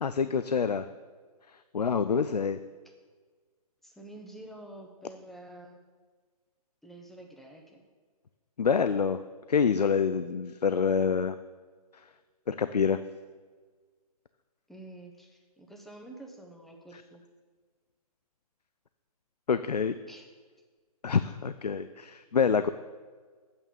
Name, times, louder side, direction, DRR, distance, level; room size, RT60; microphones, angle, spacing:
voice 1, 0.0-0.9 1.4-2.6 8.6-9.2 9.5-11.4 11.9-12.1 12.5-13.0 16.9-17.0 19.5-20.0 21.0-22.7, left 6 dB, 90° left, 12 dB, 0.5 m, -27 dB
voice 2, 3.8-5.8 6.8-7.8 14.7-17.2 20.1-20.3, right 1 dB, ahead, 2 dB, 1.1 m, -48 dB
8.7 x 6.8 x 7.2 m, 1.5 s
figure-of-eight pair, 135°, 20 cm